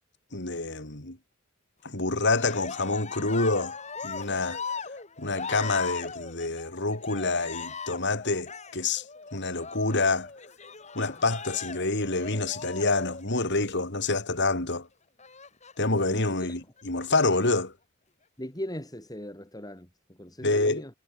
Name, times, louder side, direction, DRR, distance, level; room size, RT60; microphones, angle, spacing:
voice 1, 0.3-1.2 1.8-3.7 4.0-4.6 5.2-9.0 9.3-10.3 10.9-14.9 15.8-17.7 20.4-20.8, left 3 dB, 55° left, 4.1 m, -27 dB
Cheering, 2.2-13.9 15.2-16.1 16.8-17.4, left 5 dB, 35° left, 4.1 m, -39 dB
voice 2, 18.4-19.9 20.2-20.9, left 1 dB, 20° left, 8.0 m, -39 dB
head